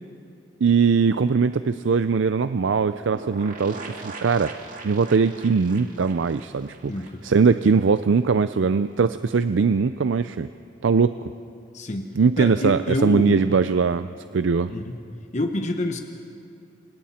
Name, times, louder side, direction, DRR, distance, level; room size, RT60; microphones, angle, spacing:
voice 1, 0.6-4.5 4.8-6.9 7.2-10.5 10.8-11.1 12.2-14.7, right 5 dB, 85° right, 12 dB, 0.5 m, -21 dB
sound 1, 3.1-7.7 8.0-8.1 8.3-8.4, right 3 dB, 45° right, 2.1 m, -40 dB
voice 2, 6.9-7.2 11.7-12.1 12.4-13.5 14.7-15.0 15.3-16.0, left 1 dB, 40° left, 4 dB, 1.1 m, -27 dB
29.5 x 25.5 x 4.3 m, 2.5 s
head